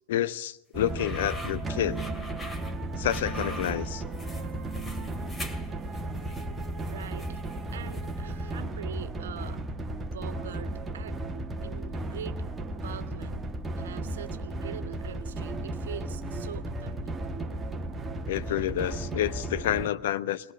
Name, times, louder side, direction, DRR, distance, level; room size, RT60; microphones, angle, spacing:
voice 1, 0.1-2.0 3.0-4.0 18.3-20.5, left 12 dB, 55° left, 1.0 m, -29 dB
sound 1, 0.7-19.9, right 2 dB, 15° right, 1.9 m, -35 dB
sound 2, 0.8-8.3, left 1 dB, 15° left, 2.7 m, -44 dB
voice 2, 6.8-7.4 7.7-9.6 10.0-11.3 11.6-12.5 12.7-13.4 13.7-17.1, right 8 dB, 60° right, 1.7 m, -43 dB
22.5 x 21.0 x 8.7 m
figure-of-eight pair, 90°, 0 cm